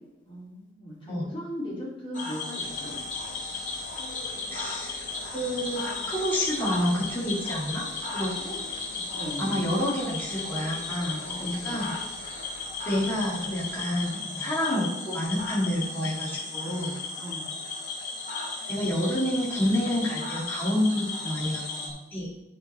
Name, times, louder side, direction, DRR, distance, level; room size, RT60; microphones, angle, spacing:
voice 1, 0.3-3.0 8.4-9.4 11.2-11.8 17.2-17.5, equal, 25° left, -11 dB, 2.6 m, -38 dB
Cricket / Frog, 2.1-21.9, left 3 dB, 45° left, 2.4 m, -35 dB
sound 1, 2.6-13.8, left 2 dB, 85° left, 2.0 m, -47 dB
voice 2, 4.5-8.5 9.4-12.0 12.9-17.0 18.7-22.3, left 1 dB, 10° left, -8 dB, 2.1 m, -29 dB
10.5 x 4.4 x 4.3 m, 0.98 s
head